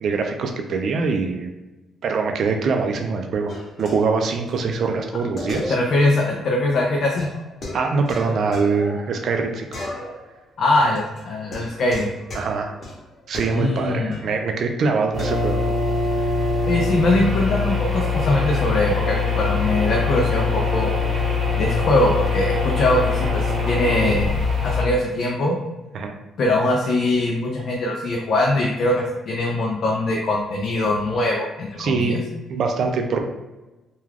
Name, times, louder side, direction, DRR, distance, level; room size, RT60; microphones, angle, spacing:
voice 1, 0.0-1.5 2.0-5.8 7.7-9.8 12.3-12.8 13.3-15.7 16.4-16.5 25.9-26.1 31.8-32.2 32.5-33.2, right 4 dB, 65° right, 4 dB, 0.3 m, -23 dB
sound 1, 3.5-4.6 4.8-4.9 5.4-6.2 6.4-6.5 7.2-9.4 9.7-10.4 10.7-14.4 15.2-15.5, left 1 dB, 45° left, 0.9 m, -35 dB
voice 2, 5.7-7.3 10.6-12.1 13.5-14.2 16.7-20.9 21.6-24.4 24.6-25.6 26.4-32.2, left 2 dB, 65° left, -1 dB, 0.4 m, -22 dB
sound 2, 15.1-24.8, left 4 dB, 40° right, 0.8 m, -23 dB
2.3 x 2.3 x 3.2 m, 1.1 s
cardioid pair, 90°, 0 cm